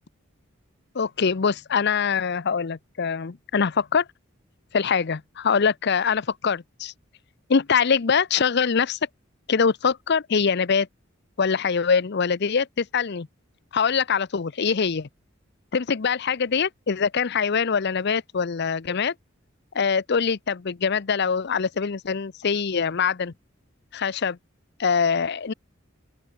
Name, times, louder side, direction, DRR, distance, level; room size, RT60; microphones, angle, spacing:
voice 1, 0.9-4.0 4.7-6.9 7.5-9.0 9.5-10.9 11.4-13.3 13.7-15.1 15.7-19.1 19.7-23.3 23.9-24.4 24.8-25.5, left 6 dB, 55° left, 0.6 m, -23 dB
open air
head